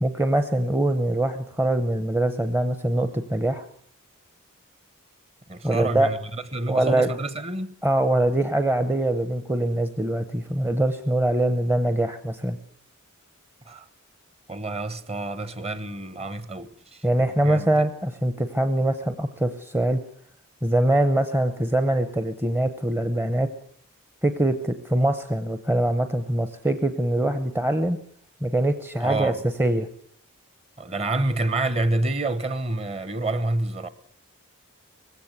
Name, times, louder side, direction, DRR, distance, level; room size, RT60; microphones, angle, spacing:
voice 1, 0.0-3.6 5.6-6.1 6.7-7.1 7.8-12.6 17.0-20.0 20.6-23.5 24.2-28.0 28.4-29.3 29.6-29.9, right 1 dB, 10° right, 0.8 m, -23 dB
voice 2, 5.5-7.7 13.7-13.8 14.5-17.0 17.4-17.8 29.0-29.4 30.8-33.9, right 2 dB, 25° right, 1.1 m, -28 dB
20.0 x 16.0 x 8.1 m
head